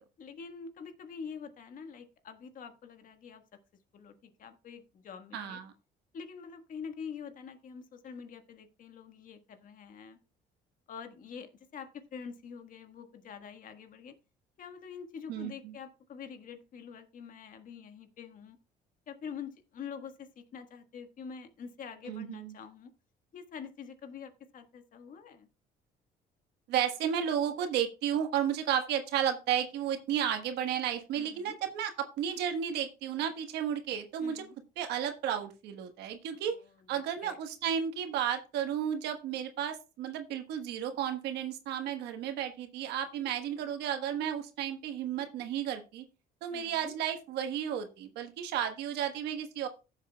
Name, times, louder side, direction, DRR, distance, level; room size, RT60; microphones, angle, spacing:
voice 1, 0.2-3.4 3.9-5.6 6.1-10.2 10.9-14.1 14.6-18.6 19.1-22.9 23.3-25.5 31.1-31.6 34.2-34.5 36.9-37.4 46.5-46.9, left 6 dB, 55° left, 8 dB, 1.4 m, -46 dB
voice 2, 5.3-5.7 15.3-15.7 22.0-22.5 26.7-34.4 34.8-36.6 36.9-46.0 46.4-49.7, right 9 dB, 85° right, 6 dB, 1.3 m, -33 dB
15.0 x 7.3 x 2.3 m, 0.29 s
cardioid pair, 110°, 17 cm